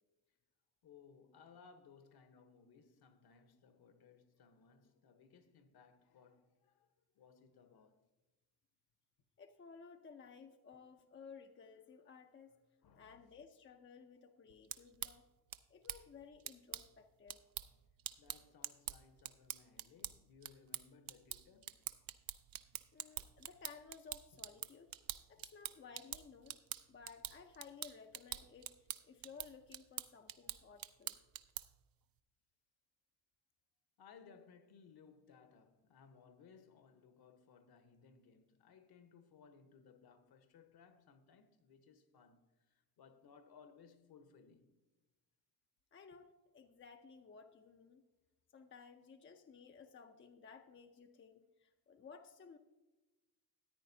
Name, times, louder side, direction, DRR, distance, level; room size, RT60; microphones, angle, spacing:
voice 1, 0.8-8.0 12.8-13.2 15.0-15.1 18.2-21.8 34.0-44.8, left 6 dB, 50° left, 1.1 m, -63 dB
voice 2, 9.4-12.6 13.0-15.3 15.7-17.5 22.9-24.9 25.3-26.6 26.9-31.2 45.9-48.0 48.5-52.6, left 5 dB, 25° left, 0.6 m, -57 dB
sound 1, 14.5-31.9, right 12 dB, 45° right, 0.6 m, -47 dB
13.5 x 9.1 x 2.7 m
supercardioid pair, 70°, 49 cm